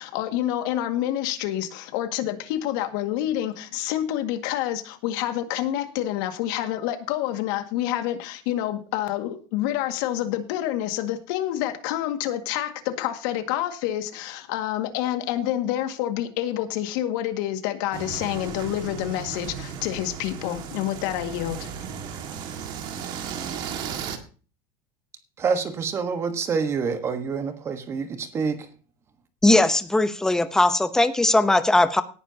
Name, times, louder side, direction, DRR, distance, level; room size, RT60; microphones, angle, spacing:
voice 1, 0.0-21.7, left 12 dB, 65° left, 7 dB, 1.9 m, -28 dB
sound 1, 17.9-24.2, right 7 dB, 40° right, 1.8 m, -35 dB
voice 2, 25.4-28.7, right 5 dB, 20° right, 9 dB, 1.3 m, -27 dB
voice 3, 29.4-32.0, left 2 dB, 5° left, 11 dB, 0.7 m, -19 dB
18.0 x 9.9 x 2.8 m, 0.37 s
cardioid pair, 165°, 12 cm